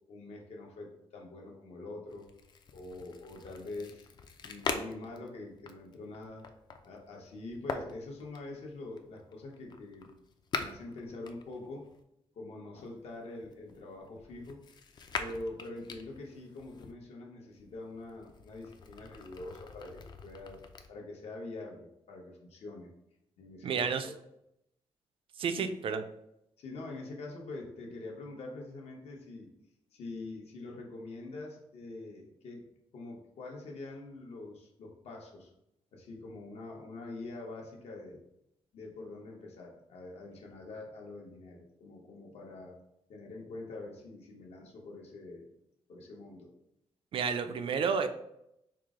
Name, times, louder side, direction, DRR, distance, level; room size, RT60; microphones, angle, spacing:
voice 1, 0.1-2.3 2.7-4.1 4.5-6.4 6.8-10.1 10.6-11.9 12.3-14.6 15.2-20.6 20.9-22.9 23.4-24.1 25.6-25.7 26.6-29.5 29.9-32.7 32.9-35.5 35.9-38.2 38.7-42.8 43.1-45.5 45.9-46.5, left 2 dB, 75° left, 0 dB, 0.9 m, -45 dB
sound 1, 2.1-12.0 12.8-16.9 17.5-20.9, left 4 dB, 40° left, 0.4 m, -43 dB
voice 2, 23.6-24.1 25.4-26.0 47.1-48.1, right 6 dB, 55° right, 8 dB, 0.4 m, -30 dB
4.6 x 2.0 x 3.6 m, 0.80 s
wide cardioid pair, 150°, 11 cm